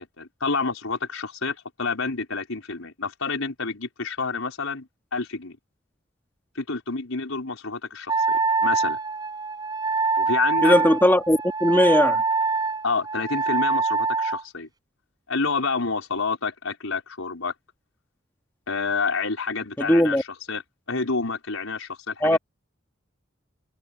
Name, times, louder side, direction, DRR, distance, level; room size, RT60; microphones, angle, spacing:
voice 1, 0.2-5.6 6.5-8.2 8.6-9.0 10.2-10.8 12.8-14.7 15.3-17.5 18.7-20.6 20.9-22.4, left 4 dB, 90° left, 4.8 m, -28 dB
Wind instrument woodwind instrument, 8.1-14.4, right 4 dB, 20° right, 7.7 m, -24 dB
voice 2, 10.6-12.2 19.8-20.2 22.2-22.4, left 1 dB, 10° left, 2.7 m, -19 dB
head